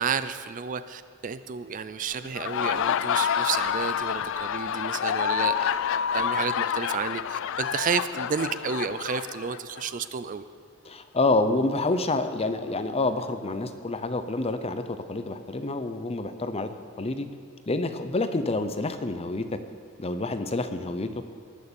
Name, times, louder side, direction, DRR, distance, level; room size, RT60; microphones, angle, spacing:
voice 1, 0.0-5.7 6.1-10.4, right 6 dB, 35° right, 12 dB, 0.4 m, -31 dB
Laughter, 2.2-9.9, left 8 dB, 60° left, 0.4 m, -28 dB
voice 2, 10.8-16.7 17.0-17.3 17.7-19.6 20.0-21.1, left 2 dB, 25° left, 9 dB, 0.7 m, -28 dB
18.5 x 6.6 x 7.0 m, 2.1 s
head